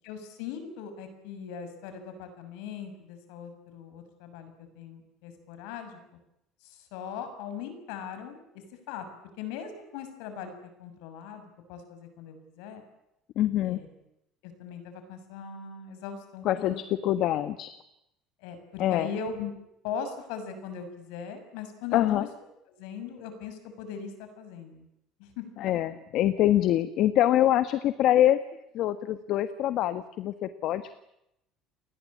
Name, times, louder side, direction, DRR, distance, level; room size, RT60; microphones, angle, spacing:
voice 1, 0.0-6.0 6.6-8.4 8.9-9.1 9.4-10.5 10.8-12.8 13.6-13.9 14.4-16.8 17.1-17.2 18.4-19.5 19.8-22.3 22.8-24.9 25.2-25.4 25.7-25.8, left 7 dB, 85° left, 9 dB, 6.8 m, -39 dB
voice 2, 13.3-13.8 16.4-17.7 18.8-19.1 21.9-22.3 25.6-28.4 28.7-30.9, left 12 dB, 55° left, 11 dB, 1.4 m, -25 dB
29.5 x 20.5 x 8.7 m, 0.83 s
cardioid pair, 145°, 0 cm